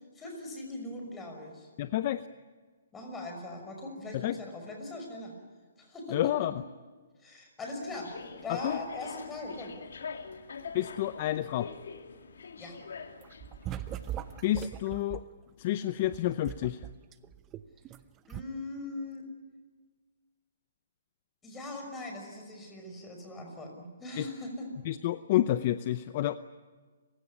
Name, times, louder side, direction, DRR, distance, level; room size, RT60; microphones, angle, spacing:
voice 1, 0.2-1.7 2.9-5.3 5.8-6.2 7.2-8.1 8.4-9.7 12.6-12.8 18.3-19.2 21.4-24.7, left 2 dB, 10° left, 2 dB, 5.8 m, -40 dB
voice 2, 1.8-2.3 4.1-4.4 6.1-6.6 8.5-8.8 10.7-11.7 14.4-15.2 15.6-16.8 24.2-24.3 24.8-26.4, left 13 dB, 40° left, 13 dB, 0.7 m, -29 dB
sound 1, 7.9-14.7, left 5 dB, 75° left, 2.7 m, -44 dB
sound 2, 13.2-15.2 16.0-18.0 18.3-18.4, right 12 dB, 20° right, 0.8 m, -40 dB
29.0 x 16.5 x 9.9 m, 1.4 s
hypercardioid pair, 150°, 0 cm